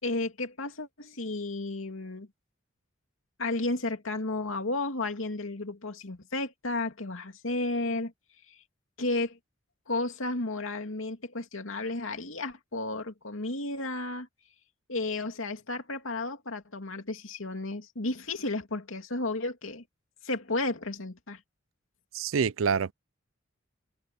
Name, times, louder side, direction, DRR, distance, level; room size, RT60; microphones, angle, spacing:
voice 1, 0.0-2.3 3.4-8.1 8.5-8.6 9.0-9.4 9.9-14.3 14.9-19.8 20.2-21.4, left 2 dB, 85° left, 2.6 m, -33 dB
voice 2, 22.1-22.9, right 6 dB, 80° right, 0.5 m, -26 dB
head